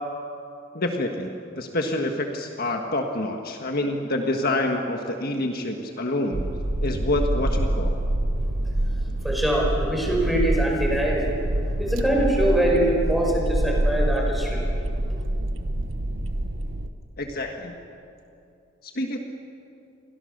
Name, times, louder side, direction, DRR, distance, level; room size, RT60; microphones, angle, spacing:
voice 1, 0.7-1.3 1.6-6.4 6.8-7.9 17.2-17.8 18.9-19.2, left 1 dB, 50° left, 3 dB, 1.6 m, -27 dB
sound 1, 6.3-16.9, right 1 dB, 75° right, 1.2 m, -26 dB
voice 2, 9.2-11.3 11.8-14.6, right 1 dB, ahead, -2 dB, 5.6 m, -23 dB
29.5 x 23.5 x 6.7 m, 2.7 s
head